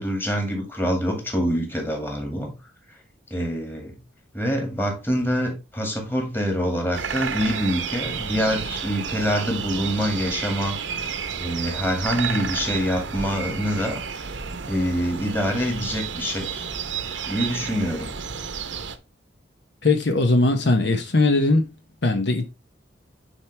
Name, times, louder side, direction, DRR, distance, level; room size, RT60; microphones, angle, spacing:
voice 1, 0.0-2.5 3.3-4.0 4.3-10.8 11.4-14.0 14.7-16.7 17.3-18.1, equal, 10° left, 2.1 m, -25 dB
sound 1, 6.9-19.0, right 6 dB, 75° right, 0.9 m, -31 dB
voice 2, 19.8-21.7 22.0-22.4, left 2 dB, 60° left, 0.9 m, -19 dB
9.2 x 4.5 x 3.3 m
head